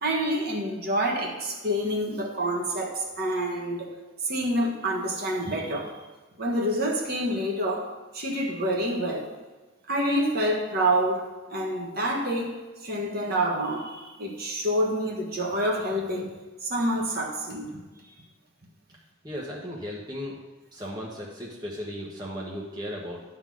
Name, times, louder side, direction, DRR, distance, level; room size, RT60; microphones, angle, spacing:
voice 1, 0.0-3.9 4.2-5.9 6.4-7.9 8.1-9.3 9.9-11.2 11.5-12.6 12.8-16.3 16.6-17.7, right 1 dB, 50° right, -1 dB, 1.4 m, -27 dB
voice 2, 19.2-20.4 20.7-23.2, equal, 20° right, -4 dB, 1.2 m, -36 dB
11.0 x 3.8 x 6.2 m, 1.2 s
head